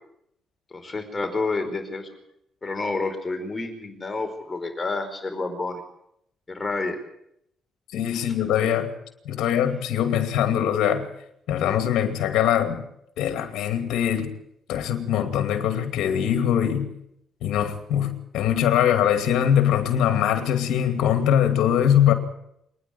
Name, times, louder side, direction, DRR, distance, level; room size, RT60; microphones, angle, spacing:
voice 1, 0.7-2.1 2.6-5.8 6.5-7.0 8.1-8.3 9.4-9.5, left 3 dB, 25° left, 4.9 m, -29 dB
voice 2, 7.9-8.9 9.2-11.1 11.5-12.8 13.2-14.3 14.7-16.9 17.4-22.1, left 9 dB, 80° left, 2.5 m, -22 dB
26.0 x 10.0 x 9.9 m
cardioid pair, 90°, 0 cm